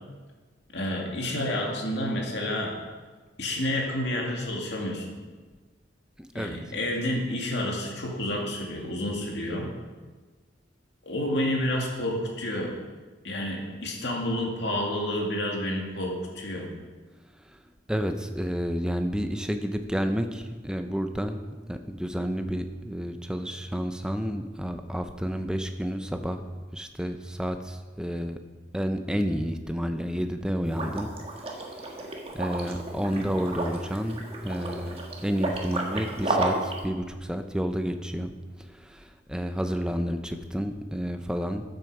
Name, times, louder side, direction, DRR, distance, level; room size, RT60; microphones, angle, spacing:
voice 1, 0.7-2.8 3.4-5.1 6.3-9.7 11.0-12.7 13.2-16.7 33.1-33.3, left 1 dB, 65° left, 0 dB, 2.3 m, -29 dB
voice 2, 17.9-21.4 21.7-26.5 26.7-28.4 28.7-31.1 31.5-31.9 32.3-38.3 38.6-41.6, equal, 5° right, 7 dB, 0.7 m, -30 dB
Liquid, 30.7-36.8, right 2 dB, 30° right, 1.5 m, -32 dB
13.5 x 7.7 x 4.9 m, 1.3 s
head